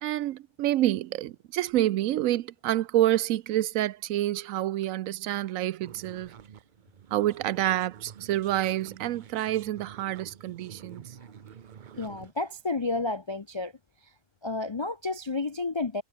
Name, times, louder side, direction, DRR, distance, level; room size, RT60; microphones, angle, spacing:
voice 1, 0.0-6.3 7.1-11.1, right 14 dB, 75° right, 0.9 m, -28 dB
sound 1, 5.8-12.3, right 8 dB, 45° right, 0.7 m, -48 dB
voice 2, 12.0-13.7 14.4-16.0, left 3 dB, 45° left, 0.3 m, -31 dB
omnidirectional pair, 1.5 m